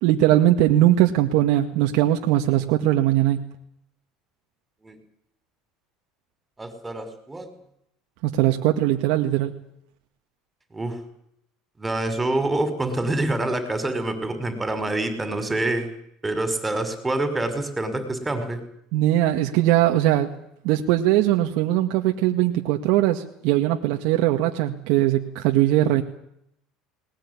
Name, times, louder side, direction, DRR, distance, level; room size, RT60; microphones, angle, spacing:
voice 1, 0.0-3.4 8.2-9.5 18.9-20.3 20.6-26.0, right 14 dB, 70° right, 3 dB, 1.9 m, -20 dB
voice 2, 6.6-7.5 10.7-11.0 11.8-15.9 16.2-18.6, right 2 dB, 15° right, 10 dB, 5.9 m, -26 dB
20.0 x 20.0 x 9.9 m, 0.74 s
hypercardioid pair, 85°, 0 cm